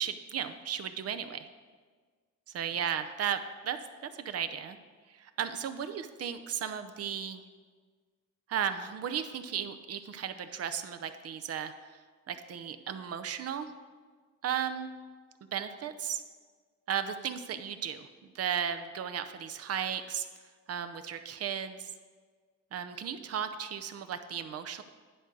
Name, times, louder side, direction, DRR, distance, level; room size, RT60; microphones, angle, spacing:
voice 1, 0.0-1.5 2.5-3.4 3.6-3.8 4.0-4.8 5.1-7.4 8.5-11.7 12.3-13.7 14.4-14.9 15.5-16.2 16.9-18.1 18.3-20.3 20.7-21.9 22.7-24.8, right 8 dB, 55° right, 9 dB, 0.6 m, -35 dB
10.0 x 3.9 x 6.3 m, 1.5 s
cardioid pair, 90°, 30 cm